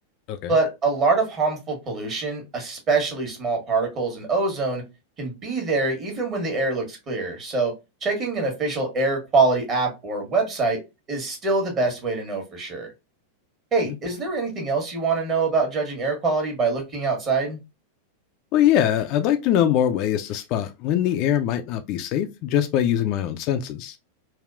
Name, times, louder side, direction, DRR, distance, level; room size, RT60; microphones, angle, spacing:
voice 1, 0.5-4.8 5.2-7.7 8.0-10.8 11.1-12.9 13.7-17.6, right 3 dB, 30° right, 1.3 m, -24 dB
voice 2, 18.5-24.0, left 10 dB, 40° left, 0.3 m, -22 dB
3.4 x 2.4 x 2.3 m
figure-of-eight pair, 90°, 0 cm